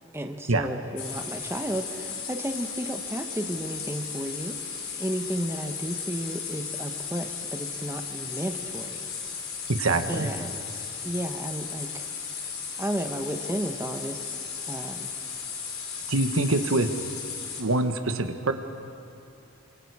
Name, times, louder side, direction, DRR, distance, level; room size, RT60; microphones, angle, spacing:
voice 1, 0.1-4.5 5.0-9.0 10.1-10.5 11.0-12.0 12.8-14.4 14.7-15.1, right 1 dB, 10° right, 5 dB, 1.1 m, -33 dB
sound 1, 1.0-17.6, left 6 dB, 80° left, 3.5 m, -36 dB
voice 2, 9.7-10.3 16.1-16.9 17.6-18.5, right 2 dB, 80° right, 7 dB, 1.3 m, -24 dB
28.0 x 25.0 x 4.9 m, 2.5 s
head